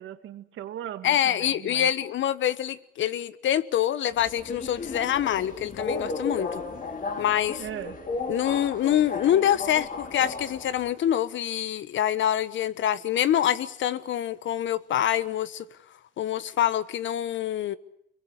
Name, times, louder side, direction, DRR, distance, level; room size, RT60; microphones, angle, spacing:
voice 1, 0.0-1.9 7.6-8.0, right 11 dB, 80° right, 2.1 m, -38 dB
voice 2, 1.0-6.6 7.2-7.6 8.3-15.6 16.2-17.8, left 11 dB, 70° left, 1.2 m, -25 dB
Subway metro underground, 4.1-10.9, left 3 dB, 45° left, 3.7 m, -35 dB
26.0 x 23.0 x 8.1 m
cardioid pair, 90°, 20 cm